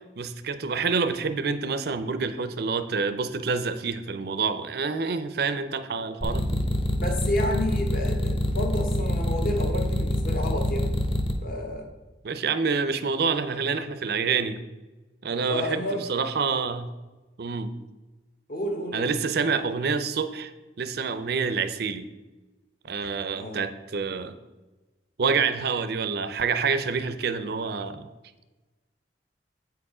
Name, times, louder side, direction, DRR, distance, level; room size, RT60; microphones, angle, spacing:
voice 1, 0.2-6.6 12.2-14.6 15.2-16.9 17.4-17.7 18.9-20.5 20.8-22.1 22.8-24.3 25.2-28.1, right 5 dB, 60° right, 11 dB, 0.5 m, -27 dB
sound 1, 6.2-11.3, left 1 dB, 30° left, 0.9 m, -25 dB
voice 2, 6.9-10.9 11.4-11.9 15.4-16.0 18.5-19.0 19.3-19.5 23.4-23.6, left 1 dB, 55° left, 3 dB, 1.1 m, -30 dB
8.1 x 4.7 x 4.9 m, 1.2 s
head